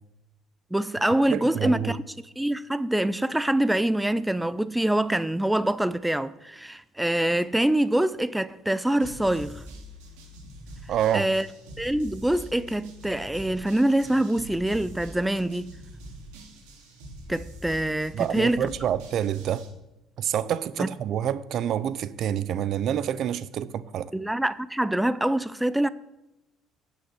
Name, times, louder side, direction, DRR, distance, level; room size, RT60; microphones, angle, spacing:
voice 1, 0.7-2.0 2.4-9.6 11.1-11.5 11.8-15.7 17.3-18.7 20.8-20.9 24.1-25.9, right 1 dB, 5° right, 0.5 m, -25 dB
voice 2, 1.3-2.0 10.9-11.3 18.1-19.7 20.2-24.1, right 10 dB, 60° right, 0.6 m, -27 dB
sound 1, 9.0-19.7, equal, 80° right, 3.6 m, -44 dB
9.7 x 8.4 x 6.2 m
supercardioid pair, 70°, 0 cm